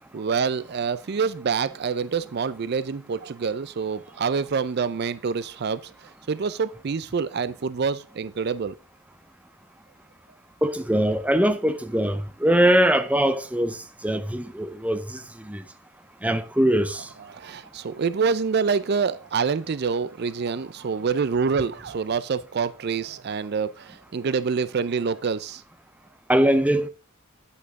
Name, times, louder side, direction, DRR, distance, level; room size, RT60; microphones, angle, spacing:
voice 1, 0.1-5.9 6.3-8.8 17.2-25.6, right 5 dB, 50° right, 0.4 m, -26 dB
voice 2, 10.6-13.8 14.0-15.2 15.5-15.6 16.2-17.1 26.3-26.9, right 1 dB, 5° right, 0.6 m, -22 dB
9.0 x 8.6 x 3.6 m
head